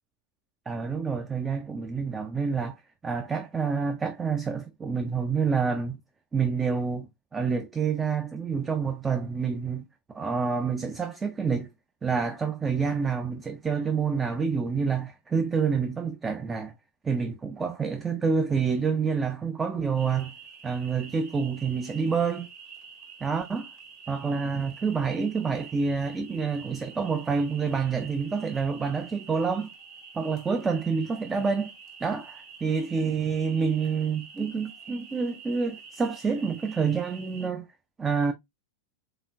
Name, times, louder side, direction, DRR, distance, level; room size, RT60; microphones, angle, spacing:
voice 1, 0.7-2.8 3.0-6.0 6.3-9.8 10.1-11.7 12.0-16.7 17.0-20.3 20.6-22.5 23.2-23.6 24.1-29.7 30.1-31.7 32.0-32.3 32.6-37.7 38.0-38.3, right 5 dB, 15° right, 0.4 m, -28 dB
sound 1, 19.9-37.5, right 6 dB, 40° right, 1.5 m, -48 dB
3.9 x 3.7 x 2.4 m
figure-of-eight pair, 90°, 0 cm